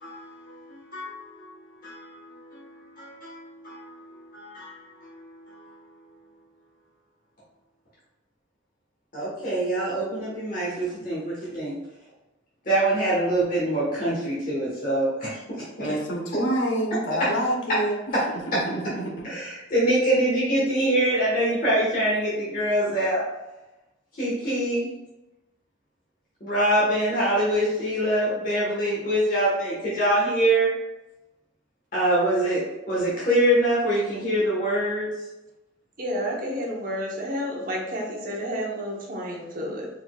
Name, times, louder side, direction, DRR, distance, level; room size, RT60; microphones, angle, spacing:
voice 1, 0.0-1.5 1.8-5.6 9.1-11.8 12.6-15.6 17.2-17.3 19.2-23.2 24.2-24.9 26.4-30.7 31.9-35.1, right 1 dB, 45° left, -8 dB, 1.3 m, -25 dB
voice 2, 15.8-17.9 18.3-19.3, right 1 dB, 70° left, 0 dB, 1.0 m, -27 dB
voice 3, 36.0-39.9, equal, 45° right, -2 dB, 1.0 m, -30 dB
4.3 x 4.2 x 2.3 m, 1.0 s
head